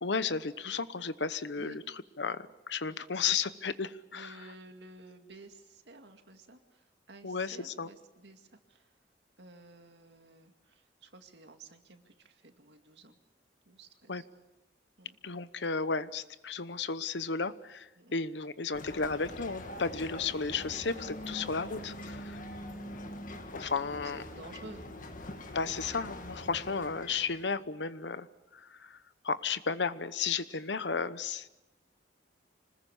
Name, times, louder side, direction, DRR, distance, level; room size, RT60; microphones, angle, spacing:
voice 1, 0.0-1.8 2.2-4.3 7.2-7.9 14.1-14.2 15.2-22.4 23.5-24.2 25.5-28.3 28.5-29.0 29.2-31.5, left 5 dB, 80° left, 14 dB, 1.0 m, -33 dB
voice 2, 4.1-9.0 9.4-13.2 13.7-14.3 15.0-15.2 18.0-18.2 22.6-23.0 23.9-24.8, right 2 dB, 80° right, 5 dB, 2.2 m, -53 dB
sound 1, 18.7-27.5, left 1 dB, 50° left, 1.9 m, -44 dB
26.0 x 20.0 x 7.2 m, 1.0 s
head